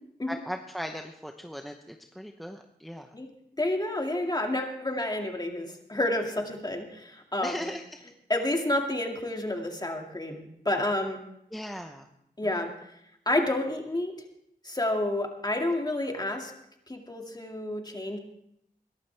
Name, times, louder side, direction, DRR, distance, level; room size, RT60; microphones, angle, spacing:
voice 1, 0.3-3.2 7.4-7.9 11.5-12.1 12.4-12.7, equal, ahead, 4 dB, 0.8 m, -38 dB
voice 2, 3.6-7.6 8.3-11.2 12.4-12.7 13.3-14.1 14.6-16.5 16.9-18.2, left 1 dB, 25° left, 2 dB, 2.2 m, -29 dB
21.5 x 12.0 x 3.4 m, 0.76 s
wide cardioid pair, 85°, 16 cm